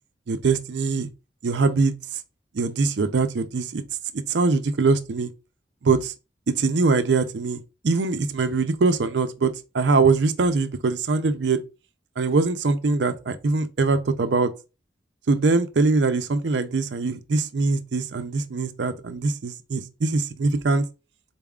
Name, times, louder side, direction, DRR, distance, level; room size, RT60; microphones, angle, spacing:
voice 1, 0.3-1.1 1.4-1.9 2.5-3.8 4.3-5.3 5.8-6.1 6.5-11.6 12.2-14.5 15.3-20.8, right 3 dB, 75° right, 0.5 m, -22 dB
4.0 x 3.5 x 2.3 m
head